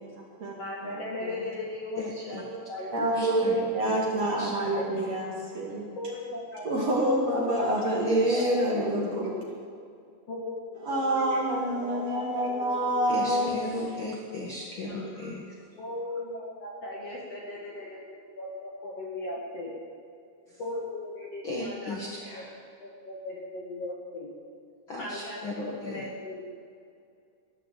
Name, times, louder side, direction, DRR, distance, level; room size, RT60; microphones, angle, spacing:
voice 1, 0.5-2.9 3.2-3.3 4.8-5.0 6.0-6.9 7.6-8.5 9.1-9.4 10.3-13.7 14.8-15.0 15.8-19.8 20.6-22.0 22.3-22.4 22.8-24.3 25.0-25.4 25.8-26.5, left 2 dB, 50° left, -4 dB, 2.0 m, -38 dB
voice 2, 2.0-2.4 2.8-4.0 4.4-4.8 8.0-9.3 13.1-15.5 20.5-20.6 21.4-22.6 24.9-26.1, left 2 dB, 85° left, -3 dB, 1.1 m, -36 dB
voice 3, 2.9-5.9 6.6-9.3 10.8-13.5, right 1 dB, 45° right, -3 dB, 2.5 m, -27 dB
14.5 x 10.5 x 7.5 m, 2.4 s
omnidirectional pair, 5.2 m